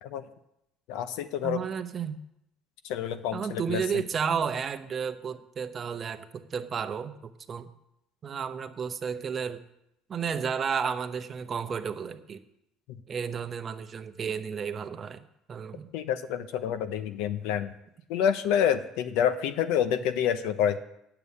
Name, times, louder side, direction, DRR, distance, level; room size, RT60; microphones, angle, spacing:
voice 1, 0.9-1.6 2.8-3.8 15.9-17.7 18.1-20.8, left 9 dB, 75° left, 10 dB, 0.8 m, -28 dB
voice 2, 1.4-2.2 3.3-7.7 8.2-9.6 10.1-12.4 13.1-15.9, right 6 dB, 30° right, 9 dB, 0.8 m, -32 dB
9.4 x 6.9 x 8.4 m, 0.80 s
cardioid pair, 150°, 0 cm